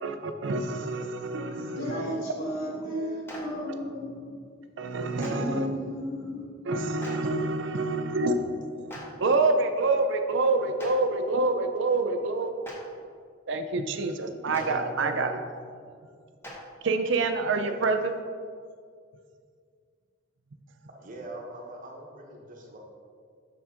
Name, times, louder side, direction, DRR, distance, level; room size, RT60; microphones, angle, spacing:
voice 1, 0.0-1.9 4.8-5.7 6.6-12.5 13.5-15.4 16.8-18.1, right 3 dB, 60° right, 7 dB, 0.5 m, -27 dB
voice 2, 1.5-4.3 5.3-6.5, equal, 85° left, -3 dB, 1.9 m, -33 dB
Clapping, 3.3-3.4 5.2-5.3 7.0-7.1 8.9-9.0 10.8-10.9 12.6-12.7 14.5-14.6 16.4-16.5, equal, 10° left, 1.2 m, -41 dB
voice 3, 20.9-22.8, right 1 dB, 40° right, 0 dB, 1.1 m, -42 dB
7.0 x 6.2 x 3.7 m, 2.1 s
head